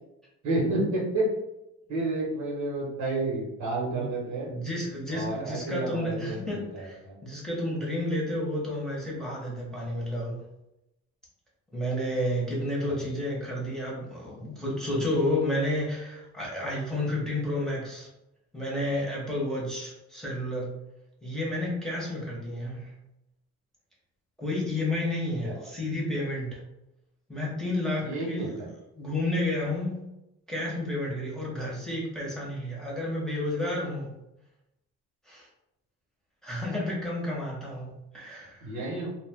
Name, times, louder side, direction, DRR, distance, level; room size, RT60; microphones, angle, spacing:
voice 1, 0.4-1.3 1.9-4.5 5.1-7.2 12.9-13.0 25.4-25.7 28.0-28.7 38.6-39.1, right 2 dB, 70° right, -4 dB, 1.4 m, -30 dB
voice 2, 4.5-10.4 11.7-18.1 18.5-20.7 21.2-22.9 24.4-26.6 27.3-28.5 28.9-30.0 30.5-34.1 35.3-35.5 36.4-38.7, left 1 dB, ahead, -5 dB, 1.1 m, -31 dB
2.5 x 2.4 x 3.5 m, 0.90 s
cardioid pair, 90°, 30 cm